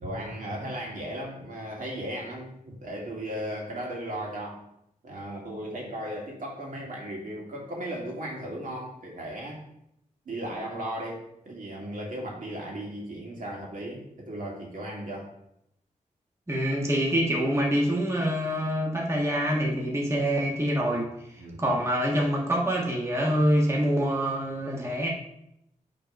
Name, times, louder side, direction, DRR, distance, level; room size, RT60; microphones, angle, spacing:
voice 1, 0.0-4.6 5.0-9.6 10.3-15.3 21.4-21.6, right 1 dB, 80° right, -2 dB, 2.3 m, -36 dB
voice 2, 16.5-21.1 21.6-25.1, equal, 20° right, -2 dB, 1.5 m, -25 dB
8.7 x 4.0 x 5.2 m, 0.79 s
wide cardioid pair, 100°, 14 cm